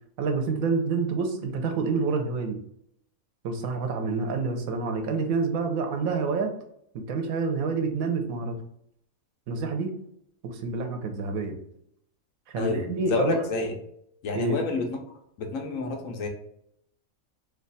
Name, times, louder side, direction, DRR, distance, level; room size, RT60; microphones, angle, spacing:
voice 1, 0.2-2.6 3.4-6.5 6.9-8.6 9.5-9.9 10.4-11.5 12.5-13.4 14.3-14.6, right 4 dB, 85° right, 5 dB, 1.1 m, -28 dB
voice 2, 12.6-13.7 14.2-14.9 15.4-16.3, left 3 dB, 70° left, 3 dB, 1.1 m, -28 dB
3.0 x 2.3 x 3.9 m, 0.73 s
omnidirectional pair, 1.5 m